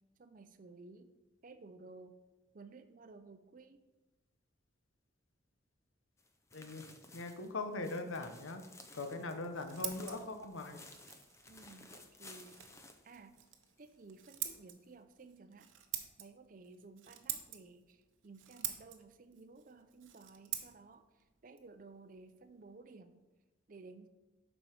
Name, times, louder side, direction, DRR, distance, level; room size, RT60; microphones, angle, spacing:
voice 1, 0.2-1.1 1.4-2.2 2.5-3.8 11.5-12.6 13.0-13.3 13.8-15.7 16.2-23.2 23.7-24.1, right 3 dB, 45° right, 9 dB, 0.5 m, -55 dB
sound 1, 6.2-13.9 14.2-14.3 14.8-14.9, left 2 dB, 15° left, 0.5 m, -57 dB
voice 2, 6.5-8.6 8.9-10.8, left 3 dB, 90° left, 7 dB, 0.9 m, -41 dB
Scissors, 9.2-22.8, right 11 dB, 80° right, 0.8 m, -47 dB
7.1 x 5.5 x 4.8 m, 1.1 s
head